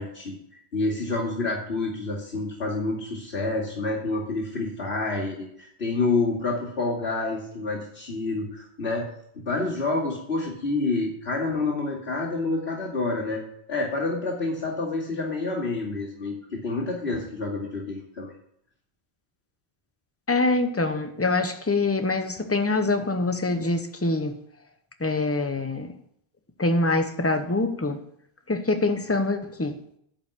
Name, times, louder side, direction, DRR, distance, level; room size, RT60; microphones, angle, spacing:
voice 1, 0.0-9.1 9.4-13.4 13.7-18.3, left 3 dB, 70° left, -8 dB, 2.9 m, -28 dB
voice 2, 20.3-24.4 25.0-26.0 26.6-28.0 28.5-29.8, left 2 dB, 15° left, 8 dB, 0.8 m, -24 dB
11.0 x 5.4 x 8.6 m, 0.71 s
omnidirectional pair, 1.1 m